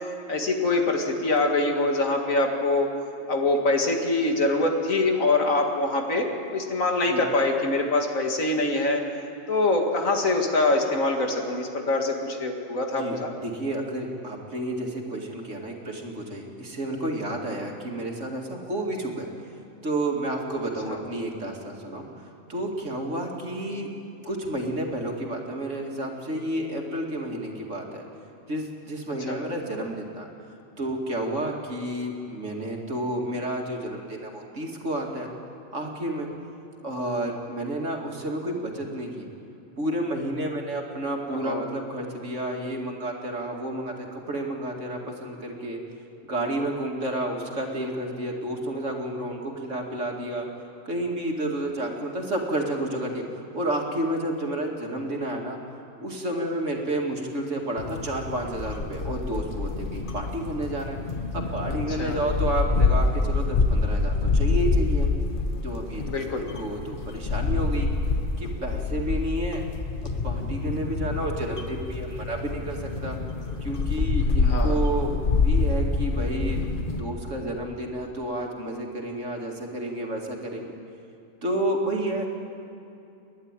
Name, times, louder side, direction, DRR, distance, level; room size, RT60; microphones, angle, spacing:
voice 1, 0.3-2.9 3.3-9.0 9.5-13.3 20.9-21.0 29.3-29.4 41.3-41.6 61.7-62.2 66.0-66.5 74.5-74.8, left 2 dB, 80° left, 2 dB, 2.5 m, -24 dB
voice 2, 12.9-19.3 19.8-23.9 24.2-28.0 28.5-30.3 30.8-35.3 35.7-36.3 36.8-39.3 39.8-45.8 46.3-50.5 50.9-55.6 56.0-61.0 61.3-65.1 65.6-66.0 66.3-67.9 68.4-69.6 70.2-73.2 73.6-75.1 75.4-76.6 76.9-80.7 81.4-82.3, right 1 dB, 65° right, 0 dB, 2.7 m, -30 dB
sound 1, 57.8-77.0, left 3 dB, 40° left, 1.3 m, -26 dB
29.5 x 11.0 x 9.0 m, 2.8 s
omnidirectional pair, 1.4 m